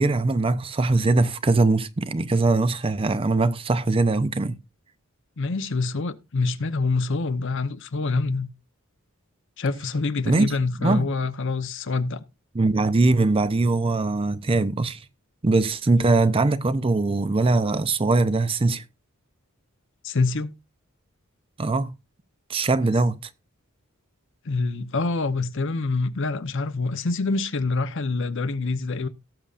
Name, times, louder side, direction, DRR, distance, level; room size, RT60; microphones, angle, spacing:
voice 1, 0.0-4.6 10.3-10.6 10.8-11.1 12.5-15.0 15.4-18.8 21.6-21.9 22.5-23.2, right 3 dB, 25° right, 0.5 m, -21 dB
voice 2, 5.4-8.5 9.6-12.2 20.0-20.5 24.4-29.1, left 3 dB, 60° left, 0.8 m, -26 dB
18.0 x 6.9 x 2.5 m
head